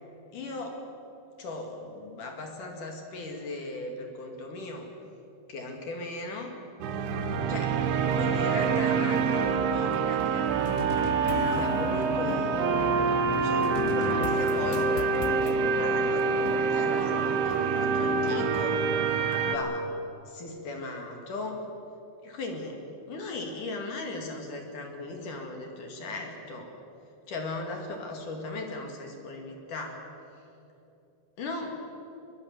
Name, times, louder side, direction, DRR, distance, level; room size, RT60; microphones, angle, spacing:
voice 1, 0.3-0.8 1.4-4.9 5.5-6.5 7.5-7.8 8.1-10.7 11.5-12.9 13.3-18.8 19.4-19.9 20.2-21.6 22.2-22.8 23.1-26.7 27.3-30.0 31.4-31.8, left 2 dB, 50° left, 3 dB, 3.3 m, -37 dB
sound 1, 6.8-19.6, right 5 dB, 90° right, 3.7 m, -26 dB
sound 2, 10.7-15.5, left 9 dB, 80° left, 3.4 m, -36 dB
22.5 x 21.0 x 7.5 m, 2.8 s
omnidirectional pair, 5.4 m